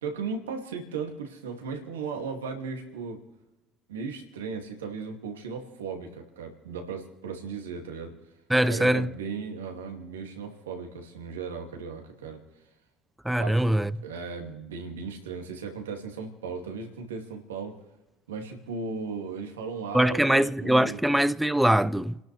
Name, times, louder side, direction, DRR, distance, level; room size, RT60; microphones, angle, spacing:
voice 1, 0.0-3.2 3.9-8.2 8.7-12.4 13.4-17.8 18.3-21.0, right 5 dB, 85° right, 2.4 m, -36 dB
voice 2, 8.5-9.1 13.2-13.9 19.9-22.2, right 1 dB, 5° right, 0.8 m, -22 dB
30.0 x 12.0 x 3.4 m
hypercardioid pair, 60°, 0 cm